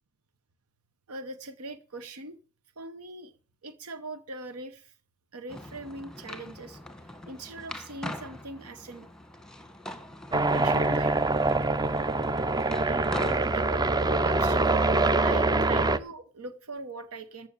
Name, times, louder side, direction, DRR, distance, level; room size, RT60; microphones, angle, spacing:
voice 1, 1.1-2.4 2.8-3.3 3.6-5.0 5.3-9.1 10.5-11.1 12.9-13.9 14.2-14.9 15.2-17.5, right 2 dB, 80° right, 10 dB, 1.0 m, -41 dB
sound 1, 5.5-15.3, left 1 dB, 5° left, 1.6 m, -43 dB
sound 2, 10.3-16.0, right 2 dB, 20° right, 0.5 m, -24 dB
14.5 x 6.1 x 8.3 m, 0.39 s
head